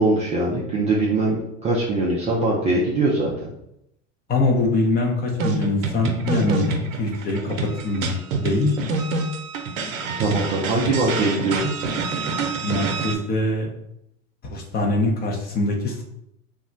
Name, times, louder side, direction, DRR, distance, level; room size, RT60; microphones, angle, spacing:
voice 1, 0.0-3.3 10.2-11.7, right 2 dB, 20° right, -4 dB, 0.3 m, -22 dB
voice 2, 4.3-7.5 7.8-8.2 8.4-8.7 12.6-13.7 14.4-16.0, left 2 dB, 25° left, 1 dB, 0.6 m, -23 dB
sound 1, 5.4-13.2, right 3 dB, 90° right, 0.6 m, -27 dB
2.3 x 2.1 x 3.8 m, 0.80 s
hypercardioid pair, 105°, 39 cm